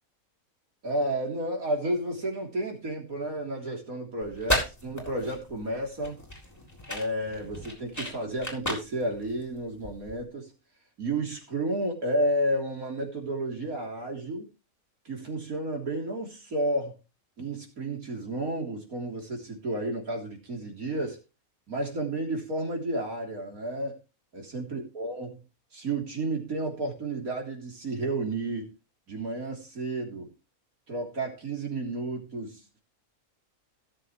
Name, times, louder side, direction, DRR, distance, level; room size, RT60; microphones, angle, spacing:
voice 1, 0.8-6.2 6.9-10.5 11.0-14.5 15.1-17.0 17.4-21.2 21.7-24.0 24.3-25.4 25.7-28.7 29.1-30.3 30.9-32.8, right 1 dB, 75° right, 3.8 m, -31 dB
sound 1, 4.2-10.2, left 1 dB, 10° left, 3.9 m, -34 dB
17.5 x 7.5 x 3.2 m
omnidirectional pair, 1.5 m